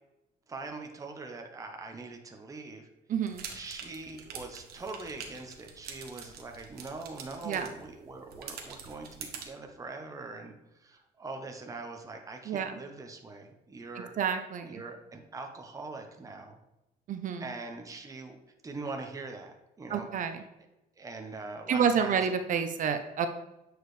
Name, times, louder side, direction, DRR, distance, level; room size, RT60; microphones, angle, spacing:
voice 1, 0.5-2.9 3.5-14.1 14.6-16.6 17.4-18.4 18.6-20.4 21.0-22.3, right 3 dB, 20° right, 4 dB, 0.9 m, -42 dB
voice 2, 3.1-3.5 7.4-7.7 12.5-12.7 14.0-14.8 17.1-17.4 19.9-20.4 21.7-23.3, right 7 dB, 50° right, 8 dB, 0.7 m, -29 dB
sound 1, 3.2-9.5, right 6 dB, 65° right, 1.2 m, -46 dB
8.4 x 4.8 x 3.2 m, 0.94 s
cardioid pair, 110°, 17 cm